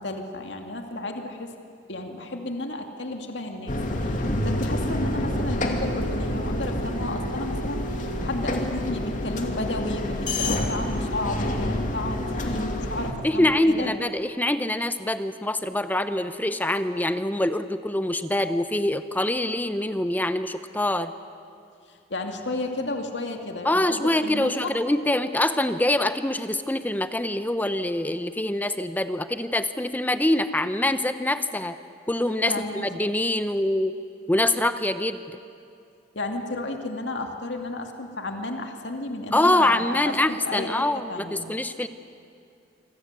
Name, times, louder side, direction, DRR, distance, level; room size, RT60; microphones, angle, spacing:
voice 1, 0.0-1.5 1.9-13.9 21.9-24.7 32.5-32.8 36.1-41.4, left 2 dB, 70° left, 4 dB, 2.4 m, -32 dB
sound 1, 3.7-13.1, left 1 dB, 45° left, 2.6 m, -28 dB
voice 2, 13.2-21.1 23.6-31.8 32.1-33.9 34.3-35.2 39.3-41.9, left 1 dB, 10° left, 11 dB, 0.7 m, -24 dB
27.0 x 25.0 x 8.2 m, 2.5 s
head